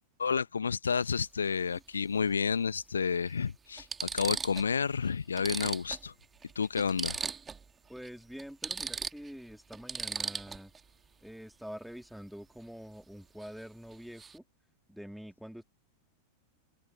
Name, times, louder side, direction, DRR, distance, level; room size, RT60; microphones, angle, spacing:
voice 1, 0.2-6.1 6.5-7.2, left 6 dB, 75° left, 1.0 m, -30 dB
sound 1, 0.8-1.0 2.5-2.6 3.3-3.4 3.8-4.7 5.0-5.1 5.4-7.7 8.0-8.1 8.4-10.8 13.4-13.6 13.9-14.4, right 5 dB, 15° right, 1.8 m, -38 dB
voice 2, 7.9-10.7 11.2-14.4 14.9-15.6, equal, ahead, 2.8 m, -46 dB
open air
figure-of-eight pair, 90°, 0 cm